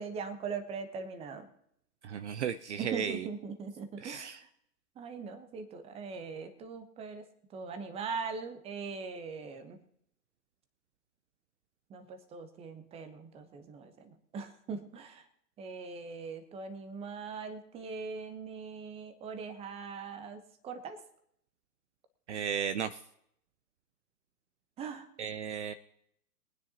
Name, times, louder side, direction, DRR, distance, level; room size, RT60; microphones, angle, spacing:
voice 1, 0.0-1.5 2.8-4.5 5.0-9.8 11.9-15.2 15.6-21.0 24.8-25.1, right 5 dB, 10° right, 9 dB, 1.0 m, -41 dB
voice 2, 2.0-3.3 4.0-4.4 22.3-23.0 25.2-25.7, right 8 dB, 45° right, 13 dB, 0.6 m, -35 dB
23.0 x 9.5 x 2.9 m, 0.72 s
figure-of-eight pair, 125°, 48 cm